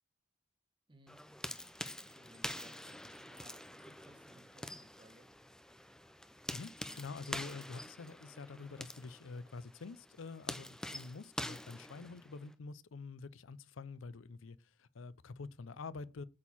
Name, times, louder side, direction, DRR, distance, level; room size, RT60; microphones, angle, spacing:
voice 1, 0.9-1.2 2.0-5.3 5.8-6.0, right 1 dB, 25° right, 1.3 m, -62 dB
sound 1, 1.1-12.5, left 1 dB, 5° left, 0.5 m, -46 dB
voice 2, 6.5-16.2, left 4 dB, 75° left, 0.5 m, -47 dB
8.5 x 4.5 x 7.2 m
head